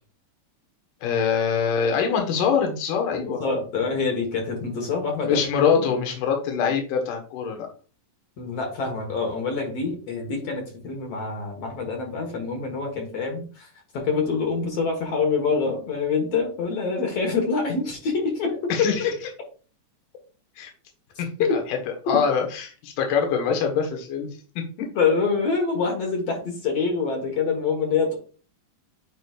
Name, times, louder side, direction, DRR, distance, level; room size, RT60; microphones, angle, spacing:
voice 1, 1.0-3.4 5.2-7.7 18.7-19.1 20.6-20.7 21.2-21.8 22.1-24.3 24.6-24.9, left 6 dB, 75° left, 3 dB, 2.8 m, -24 dB
voice 2, 3.1-5.5 5.8-5.9 8.4-13.7 13.9-18.9 21.4-21.5 24.9-28.2, left 4 dB, 55° left, 2 dB, 2.1 m, -25 dB
9.1 x 5.0 x 2.4 m, 0.37 s
omnidirectional pair, 3.8 m